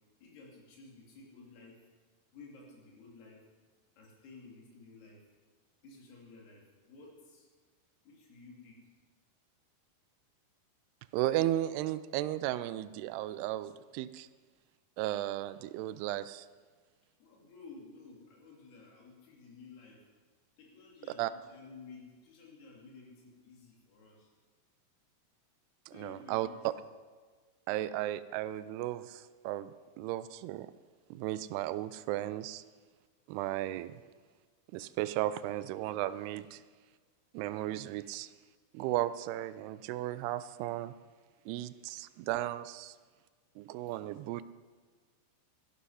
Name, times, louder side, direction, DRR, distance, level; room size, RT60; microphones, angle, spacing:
voice 1, 0.2-1.8 2.3-3.4 4.0-5.2 5.8-7.5 8.0-8.9 17.2-20.0 20.6-24.3 25.9-26.7, left 4 dB, 75° left, -2 dB, 4.6 m, -53 dB
voice 2, 11.1-14.3 15.0-16.5 21.2-21.3 25.9-26.7 27.7-29.7 30.0-30.7 31.1-32.6 33.3-34.0 34.7-36.6 37.3-38.3 38.7-40.9 41.5-43.0 43.6-44.4, right 14 dB, 85° right, 15 dB, 2.5 m, -35 dB
13.5 x 11.5 x 5.6 m, 1.5 s
omnidirectional pair, 4.6 m